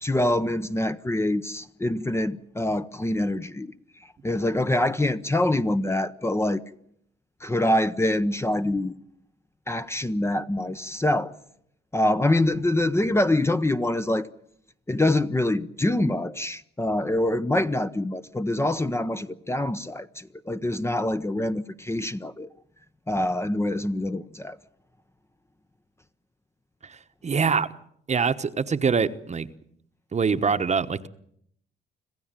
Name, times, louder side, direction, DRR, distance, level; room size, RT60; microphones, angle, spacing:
voice 1, 0.0-3.7 4.0-6.6 7.4-8.9 9.7-11.3 11.9-14.3 14.9-22.5 23.1-24.6, left 1 dB, 15° left, 0.8 m, -25 dB
voice 2, 27.2-27.7 28.1-29.5 30.1-31.1, right 5 dB, 35° right, 1.2 m, -24 dB
26.5 x 15.5 x 9.1 m
cardioid pair, 90°, 20 cm